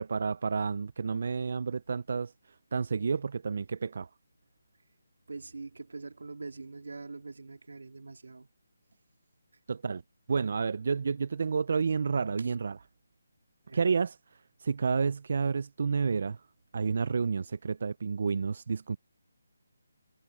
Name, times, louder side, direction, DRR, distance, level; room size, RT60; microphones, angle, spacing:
voice 1, 0.0-2.3 2.7-4.1 9.7-10.0 10.3-12.8 13.7-14.2 14.6-16.4 16.7-19.0, right 5 dB, 45° right, 0.4 m, -30 dB
voice 2, 5.3-8.5 12.4-12.5 13.7-13.8, right 3 dB, 75° right, 2.7 m, -43 dB
hypercardioid pair, 175°, 0 cm